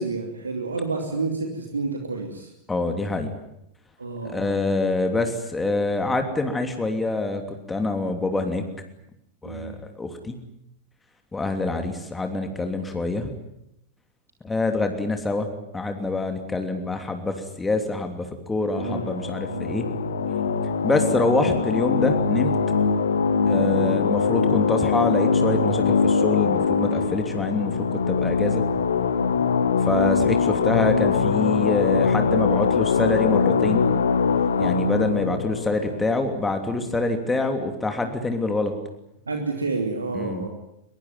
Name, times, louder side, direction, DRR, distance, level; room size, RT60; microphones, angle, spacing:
voice 1, 0.0-2.5 4.0-4.7 9.4-9.8 18.8-19.9 35.8-35.9 39.3-40.5, right 3 dB, 75° right, 4 dB, 2.8 m, -30 dB
voice 2, 2.7-3.3 4.2-7.4 7.7-8.6 9.4-10.3 11.3-13.3 14.4-15.5 15.7-19.9 20.8-22.6 23.5-28.6 29.8-33.9 34.6-38.7 40.1-40.5, left 2 dB, 10° left, 5 dB, 3.0 m, -26 dB
sound 1, 18.7-36.8, left 5 dB, 65° left, 2.1 m, -22 dB
23.0 x 22.5 x 9.4 m, 0.81 s
figure-of-eight pair, 90°, 0 cm